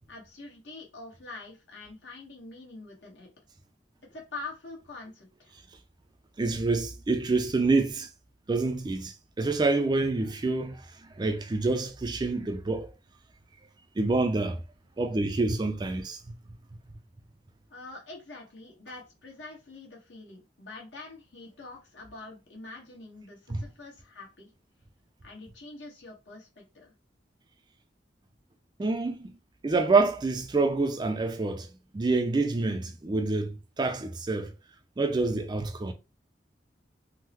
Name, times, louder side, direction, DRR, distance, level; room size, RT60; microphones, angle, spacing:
voice 1, 0.1-3.3 4.1-5.5 17.7-24.5 25.2-26.9, left 3 dB, 80° left, 1.2 m, -45 dB
voice 2, 6.4-8.1 8.5-10.8 11.2-12.9 14.0-14.6 15.0-16.2 23.5-23.6 28.8-29.3 29.6-31.7 31.9-34.5 35.0-35.9, right 3 dB, 25° right, 0.3 m, -27 dB
3.6 x 2.0 x 2.9 m
head